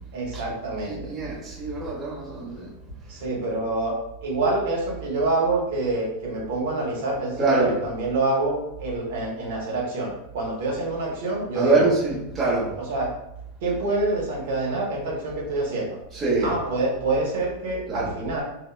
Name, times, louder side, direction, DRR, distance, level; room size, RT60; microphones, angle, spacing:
voice 1, 0.1-1.1 3.1-11.9 12.9-13.1 13.6-16.0 16.4-18.4, right 2 dB, 75° right, -3 dB, 0.8 m, -26 dB
voice 2, 0.9-2.7 7.4-7.7 11.5-12.7 16.1-16.5 17.9-18.1, right 3 dB, 20° right, -6 dB, 1.0 m, -24 dB
2.9 x 2.0 x 2.3 m, 0.86 s
supercardioid pair, 120°, 0 cm